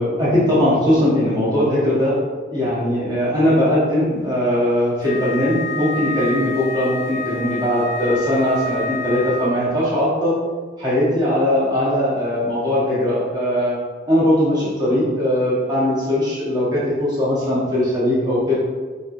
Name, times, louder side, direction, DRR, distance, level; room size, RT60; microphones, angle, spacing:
voice 1, 0.0-2.1 2.5-10.4 10.8-13.8 14.1-18.5, left 1 dB, 25° right, -9 dB, 1.1 m, -19 dB
Wind instrument woodwind instrument, 5.0-9.7, left 1 dB, 40° left, 0.9 m, -28 dB
4.1 x 3.1 x 2.6 m, 1.4 s
head